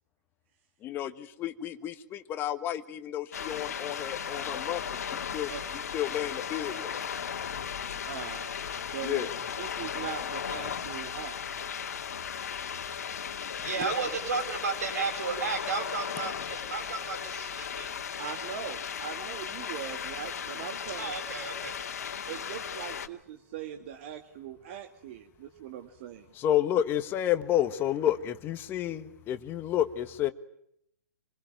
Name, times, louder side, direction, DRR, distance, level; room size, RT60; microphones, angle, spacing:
voice 1, 0.8-4.8 5.1-5.5 5.9-6.9 9.0-9.3 26.3-30.3, left 11 dB, 25° left, 9 dB, 1.3 m, -30 dB
sound 1, 3.3-23.1, left 7 dB, 65° left, 2.2 m, -36 dB
voice 2, 8.1-9.3 9.6-11.4 13.8-13.9 18.2-21.1 22.3-26.3, right 9 dB, 45° right, 5 dB, 2.2 m, -41 dB
voice 3, 13.4-18.4 21.0-21.7, right 4 dB, 70° right, 6 dB, 7.7 m, -34 dB
27.0 x 21.5 x 9.2 m, 0.76 s
hypercardioid pair, 125°, 9 cm